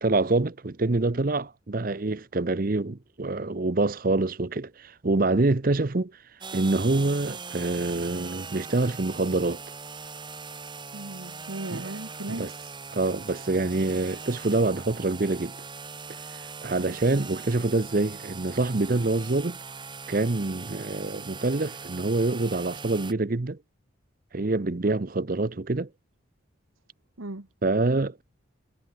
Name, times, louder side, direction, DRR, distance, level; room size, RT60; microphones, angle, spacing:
voice 1, 0.0-6.1 6.5-9.6 11.7-11.9 12.4-12.5 12.9-15.6 16.3-19.6 20.1-23.6 24.3-25.9 27.6-28.2, right 2 dB, 45° right, 0.7 m, -26 dB
sound 1, 6.4-23.1, right 5 dB, 25° right, 3.6 m, -40 dB
voice 2, 10.9-12.5 16.7-17.0 27.2-27.5, right 2 dB, 85° right, 1.8 m, -37 dB
head